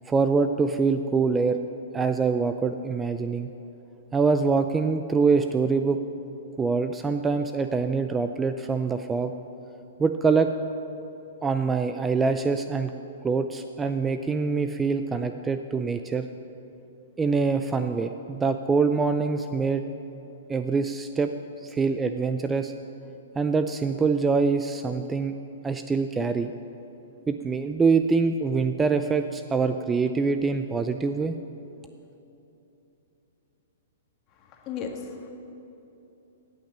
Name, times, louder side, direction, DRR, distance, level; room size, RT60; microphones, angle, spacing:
voice 1, 0.1-1.6 1.9-3.5 4.1-6.0 6.6-9.3 10.0-10.5 11.4-12.9 13.2-16.3 17.2-19.8 20.5-21.3 21.6-22.7 23.4-25.4 25.6-26.5 27.3-31.3, right 4 dB, 10° right, 8 dB, 0.4 m, -24 dB
voice 2, 34.4-35.3, left 6 dB, 30° left, 2 dB, 1.7 m, -36 dB
18.0 x 6.0 x 7.3 m, 3.0 s
hypercardioid pair, 135°, 0 cm